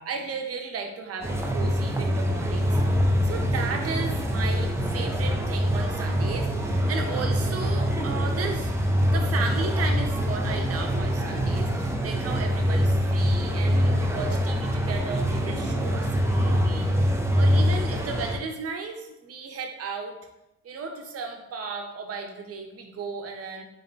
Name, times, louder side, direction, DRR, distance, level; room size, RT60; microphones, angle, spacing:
voice 1, 0.0-2.8 3.2-8.7 9.0-17.1 17.4-20.1 20.6-23.6, right 4 dB, 50° right, 3 dB, 0.7 m, -35 dB
sound 1, 1.2-18.4, equal, 10° right, 0.4 m, -24 dB
4.0 x 2.2 x 3.9 m, 0.92 s
cardioid pair, 90°, 30 cm